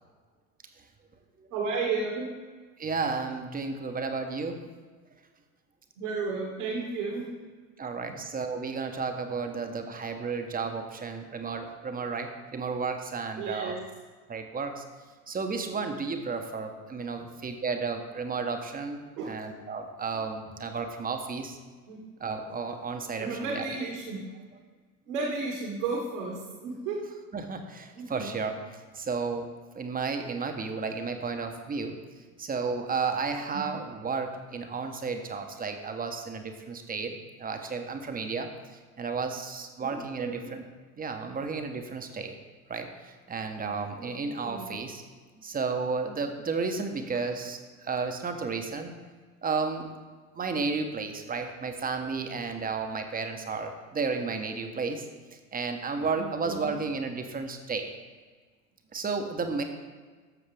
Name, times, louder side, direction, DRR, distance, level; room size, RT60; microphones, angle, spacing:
voice 1, 1.5-2.3 6.0-7.2 13.4-13.8 19.2-19.3 21.9-22.0 23.2-24.2 25.1-27.0 28.0-28.4 33.5-33.7 39.8-40.5 44.0-44.2 44.4-44.7 56.2-56.7, right 4 dB, 60° right, -1 dB, 2.0 m, -33 dB
voice 2, 2.8-4.6 7.8-13.7 14.3-14.8 15.3-21.6 22.2-23.7 27.3-29.5 29.7-32.0 32.4-38.5 39.0-40.6 41.0-42.3 42.7-45.0 45.4-48.9 49.4-49.9 50.4-55.1 55.5-57.9 58.9-59.6, right 4 dB, 20° right, 6 dB, 1.1 m, -33 dB
13.0 x 7.0 x 3.5 m, 1.5 s
figure-of-eight pair, 75°, 44 cm